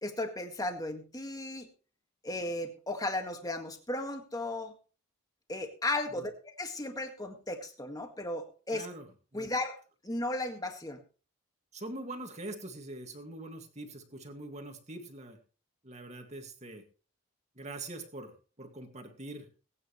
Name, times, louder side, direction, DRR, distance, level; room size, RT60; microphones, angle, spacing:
voice 1, 0.0-1.7 2.2-4.7 5.5-8.9 9.3-9.8 10.0-11.0, left 2 dB, 20° left, 5 dB, 1.9 m, -35 dB
voice 2, 8.7-9.1 9.3-9.5 11.7-15.4 15.8-16.8 17.6-19.5, right 2 dB, 35° right, 5 dB, 2.1 m, -43 dB
21.5 x 9.6 x 3.2 m, 0.36 s
head